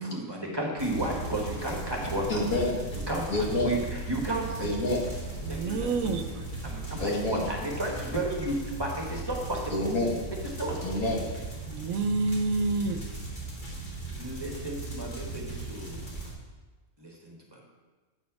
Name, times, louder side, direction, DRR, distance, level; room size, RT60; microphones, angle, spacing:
voice 1, 0.0-2.4 3.1-4.7 5.5-5.9 6.6-9.9 10.6-10.9 14.2-16.0 17.0-17.6, right 1 dB, 20° right, 1.2 m, -33 dB
sound 1, 0.8-16.3, right 2 dB, 35° left, 1.9 m, -37 dB
voice 2, 2.3-2.8 3.3-3.8 4.6-5.0 7.0-7.4 9.7-10.2 10.8-11.2, left 2 dB, 80° left, 1.9 m, -27 dB
voice 3, 5.4-6.2 11.7-13.0, right 3 dB, 75° right, 1.0 m, -28 dB
8.5 x 4.2 x 5.8 m
omnidirectional pair, 1.5 m